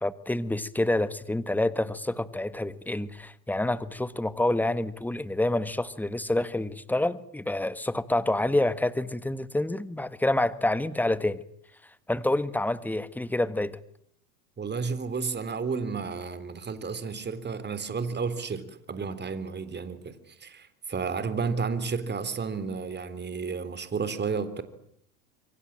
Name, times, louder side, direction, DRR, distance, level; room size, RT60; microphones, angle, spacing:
voice 1, 0.0-11.4 12.1-13.8, left 1 dB, 5° left, 1.5 m, -27 dB
voice 2, 14.6-24.6, right 5 dB, 25° right, 3.6 m, -32 dB
27.5 x 24.0 x 8.8 m
hypercardioid pair, 95°, 45 cm